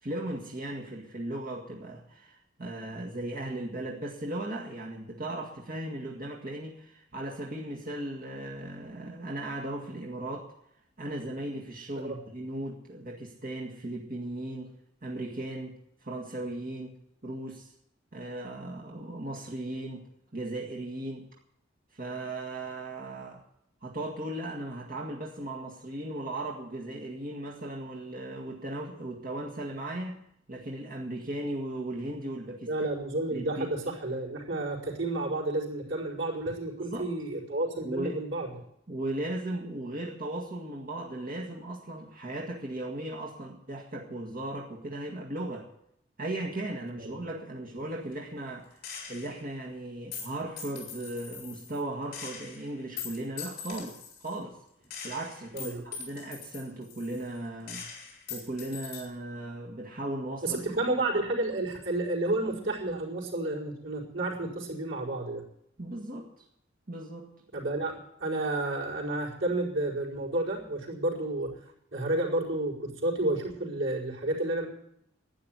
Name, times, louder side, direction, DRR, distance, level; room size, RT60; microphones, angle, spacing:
voice 1, 0.0-10.5 11.0-14.7 15.0-15.7 16.0-17.0 17.2-17.7 18.1-20.0 20.3-21.2 21.9-23.4 23.8-32.7 33.3-33.8 36.8-37.1 37.8-38.1 38.9-45.7 46.2-54.6 55.0-57.9 58.3-60.6 65.8-66.4 66.9-67.3, right 1 dB, 50° right, -2 dB, 1.9 m, -37 dB
voice 2, 32.7-38.5 47.0-47.2 55.5-55.8 60.4-65.4 67.5-71.5 71.9-74.7, right 2 dB, 85° right, -4 dB, 4.8 m, -31 dB
Gunshot gunfire, 48.8-49.4 50.1-51.8 52.1-54.4 54.9-57.4 57.7-59.0, left 6 dB, 55° left, 4.2 m, -42 dB
12.0 x 10.0 x 9.4 m, 0.76 s
head